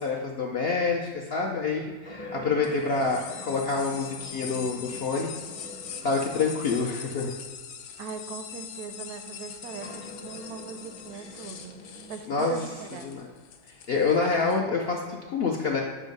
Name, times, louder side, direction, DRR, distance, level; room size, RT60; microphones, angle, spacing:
voice 1, 0.0-5.3 6.0-7.3 11.1-11.2 12.3-12.5 13.0-13.3 13.9-15.8, left 4 dB, 65° left, 0 dB, 0.6 m, -27 dB
sound 1, 2.0-6.7 7.4-7.5 9.6-12.2, left 1 dB, 30° left, 0.6 m, -44 dB
sound 2, 2.6-14.6, left 7 dB, 90° left, 1.1 m, -42 dB
voice 2, 8.0-11.8 12.1-13.1, right 6 dB, 80° right, 7 dB, 1.1 m, -39 dB
7.1 x 2.7 x 5.1 m, 1.5 s
omnidirectional pair, 1.6 m